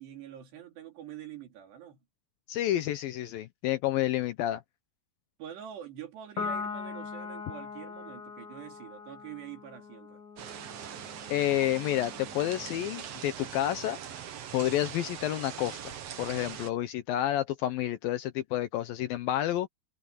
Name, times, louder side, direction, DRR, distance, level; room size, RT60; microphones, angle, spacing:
voice 1, 0.0-2.0 5.4-10.2, right 10 dB, 80° right, 5.1 m, -45 dB
voice 2, 2.5-4.6 11.3-14.0 14.5-19.7, left 13 dB, 75° left, 2.2 m, -29 dB
Piano, 6.4-13.1, left 5 dB, 40° left, 1.4 m, -41 dB
sound 1, 10.4-16.7, right 9 dB, 65° right, 1.5 m, -42 dB
omnidirectional pair, 4.8 m